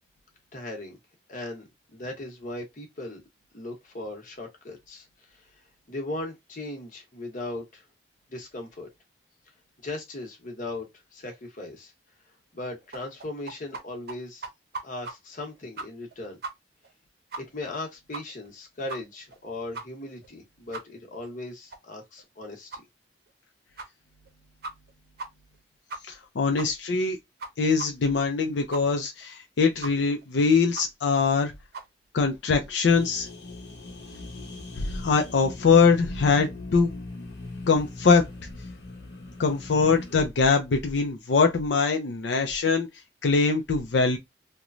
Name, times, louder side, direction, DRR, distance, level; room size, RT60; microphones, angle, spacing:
voice 1, 0.5-1.0 1.3-3.2 3.5-5.1 5.3-5.4 5.9-7.8 8.3-8.9 9.8-10.9 11.1-11.9 12.5-14.5 14.8-16.4 17.4-22.7, left 2 dB, 50° left, 0.9 m, -38 dB
sound 1, 12.9-13.8 14.1-14.2 14.4-15.1 15.4-15.5 15.8-16.1 16.4-16.5 16.8-16.9 17.3-17.4 17.7-17.8 18.1-18.5 18.9-19.0 19.3-19.4 19.7-19.8 20.2-20.3 20.7-20.8 21.2-21.3 21.7-21.8 22.2-22.3 22.7-22.8 23.3-23.4 23.8-23.9 24.3-24.4 24.6-24.9 25.2-25.3 25.5-25.6 25.9-26.2 26.6-26.7 27.0-27.1 27.4-27.5 27.8-27.9 28.2-28.3 28.7-28.8 29.2-29.3 29.8-29.9 30.2-30.3 30.7-30.8 31.2-31.3 31.7-31.9, right 3 dB, 60° right, 0.6 m, -37 dB
voice 2, 26.1-27.2 27.6-31.5 32.1-33.3 34.8-36.9 37.7-38.3 39.4-42.9 43.2-44.2, left 4 dB, 90° left, 0.5 m, -22 dB
sound 2, 32.8-40.3, left 2 dB, 75° left, 0.9 m, -40 dB
3.0 x 2.2 x 2.5 m
head